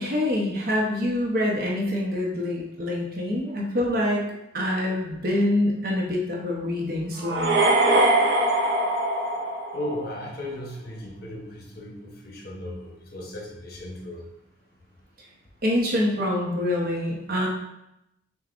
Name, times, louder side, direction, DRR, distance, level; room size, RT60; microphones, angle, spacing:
voice 1, 0.0-7.5 15.6-17.5, left 1 dB, 55° right, -2 dB, 1.0 m, -25 dB
sound 1, 7.2-10.2, right 1 dB, 75° right, 0.7 m, -22 dB
voice 2, 9.7-14.2, left 1 dB, 60° left, -1 dB, 0.9 m, -36 dB
6.6 x 2.5 x 2.5 m, 0.84 s
head